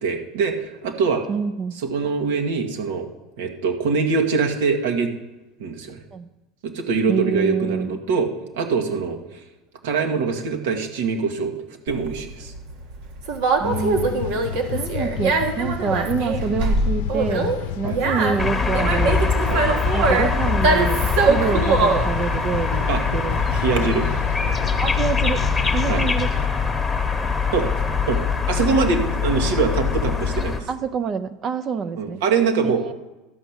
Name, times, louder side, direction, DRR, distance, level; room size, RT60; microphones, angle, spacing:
voice 1, 0.0-1.2 1.7-3.1 3.4-5.1 5.6-6.0 6.6-8.3 8.5-9.2 9.8-11.5 11.9-12.5 17.8-18.0 19.5-19.7 21.4-21.6 22.9-23.0 23.5-24.1 25.9-26.0 27.5-27.7 28.1-28.2 28.5-30.6 32.0-32.8, right 5 dB, 85° right, 4 dB, 1.6 m, -23 dB
voice 2, 1.3-1.8 6.1-6.3 7.1-7.9 13.6-14.2 14.7-19.3 19.9-23.4 24.8-25.4 25.7-26.3 30.7-32.2 32.6-32.9, right 5 dB, 35° right, 10 dB, 0.5 m, -27 dB
Conversation, 11.9-23.8, right 3 dB, 70° right, 1.5 m, -23 dB
sound 1, 13.6-26.5, left 10 dB, 85° left, 0.6 m, -31 dB
sound 2, 18.4-30.6, left 5 dB, 5° left, 1.1 m, -23 dB
12.0 x 5.9 x 8.0 m, 1.0 s
supercardioid pair, 145°, 0 cm